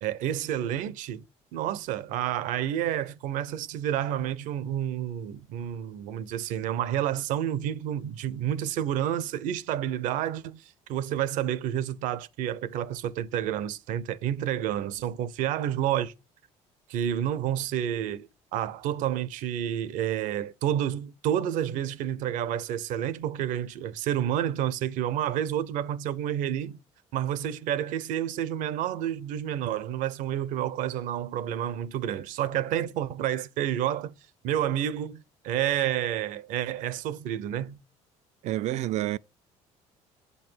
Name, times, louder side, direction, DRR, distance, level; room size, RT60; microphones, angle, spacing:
voice 1, 0.0-1.2 1.5-10.6 10.9-16.1 16.9-26.8 27.1-34.1 34.4-37.8, right 10 dB, 80° right, 0.8 m, -29 dB
voice 2, 38.4-39.2, right 14 dB, 60° right, 0.4 m, -28 dB
7.8 x 5.7 x 4.6 m
cardioid pair, 105°, 13 cm